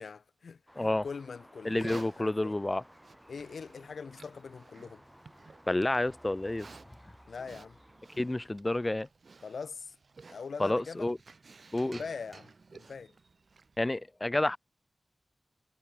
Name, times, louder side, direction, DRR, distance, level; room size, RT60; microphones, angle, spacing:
voice 1, 0.0-2.6 3.3-5.0 7.3-7.8 9.4-9.9 10.3-11.1 11.8-13.1, left 5 dB, 90° left, 0.6 m, -43 dB
sound 1, 0.7-8.5, equal, ahead, 6.8 m, -57 dB
voice 2, 1.6-2.8 5.7-6.7 8.2-9.1 10.6-11.2 11.7-12.0 13.8-14.6, left 1 dB, 30° left, 0.5 m, -29 dB
Livestock farm animals working animals, 1.6-13.8, right 4 dB, 70° right, 0.5 m, -54 dB
cardioid pair, 45°, 0 cm